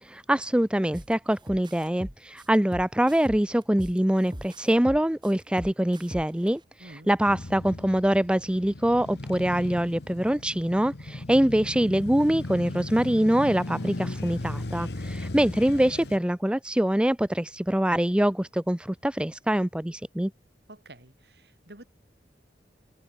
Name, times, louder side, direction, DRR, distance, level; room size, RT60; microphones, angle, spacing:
voice 1, 0.0-6.6 7.1-20.3, right 1 dB, 5° right, 0.5 m, -24 dB
sound 1, 0.9-1.1 1.5-4.0 4.3-6.5, equal, 25° right, 3.5 m, -40 dB
voice 2, 6.8-7.1 20.7-21.9, right 1 dB, 65° right, 3.7 m, -48 dB
Male speech man speaking / Motorcycle / Idling, 7.3-16.2, left 2 dB, 70° left, 1.3 m, -37 dB
head